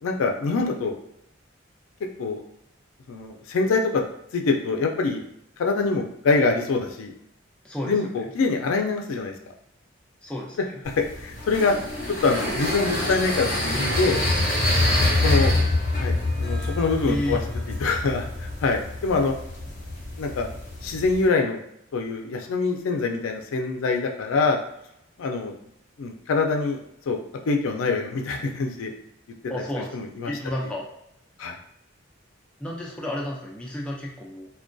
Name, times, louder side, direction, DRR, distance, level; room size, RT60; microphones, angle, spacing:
voice 1, 0.0-0.9 2.2-2.4 3.1-4.0 4.3-5.2 5.6-7.1 7.9-9.3 10.8-10.9 11.2-11.7 12.2-14.2 15.1-15.5 16.0-16.1 16.4-17.4 17.8-19.3 20.2-20.5 20.8-21.6 21.9-24.6 25.2-25.5 26.0-26.8 27.1-27.2 27.5-28.9 29.5-29.6 29.9-30.3 31.4-31.6, left 4 dB, 85° left, 3 dB, 0.4 m, -24 dB
voice 2, 10.2-10.6 17.1-17.4 29.5-30.0 30.3-30.8 32.6-34.5, left 1 dB, 5° left, -3 dB, 0.3 m, -31 dB
sound 1, 10.8-21.3, left 2 dB, 40° left, 1.0 m, -26 dB
2.5 x 2.2 x 2.2 m, 0.77 s
head